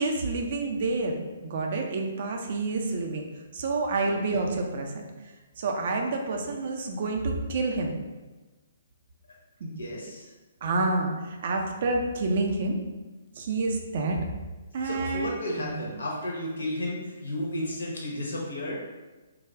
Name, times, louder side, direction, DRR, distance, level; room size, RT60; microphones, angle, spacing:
voice 1, 0.0-3.3 3.5-5.0 5.6-7.9 9.6-9.7 10.6-12.8 13.3-14.2 14.7-15.3 15.6-15.7, right 3 dB, 50° right, 2 dB, 0.5 m, -28 dB
voice 2, 4.0-4.4 9.6-10.3 14.8-18.8, left 1 dB, 70° left, -3 dB, 0.8 m, -33 dB
3.3 x 2.4 x 3.5 m, 1.2 s
figure-of-eight pair, 130°, 0 cm